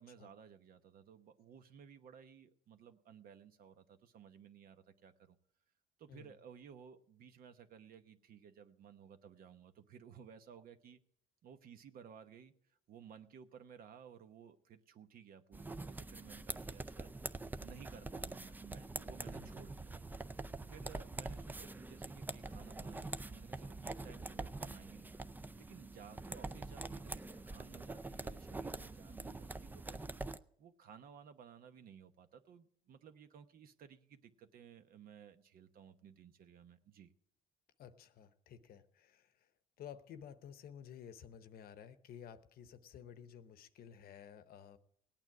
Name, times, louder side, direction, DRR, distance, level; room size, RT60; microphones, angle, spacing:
voice 1, 0.0-5.4 6.0-11.0 11.4-17.2 17.6-19.9 20.7-25.1 25.6-30.1 30.6-37.1, right 7 dB, 60° right, 9 dB, 1.0 m, -57 dB
sound 1, 15.5-30.4, right 2 dB, 10° right, 0.4 m, -45 dB
voice 2, 37.8-39.5 39.8-44.8, left 8 dB, 65° left, 12 dB, 0.9 m, -53 dB
18.0 x 8.9 x 4.8 m, 0.65 s
cardioid pair, 110°, 17 cm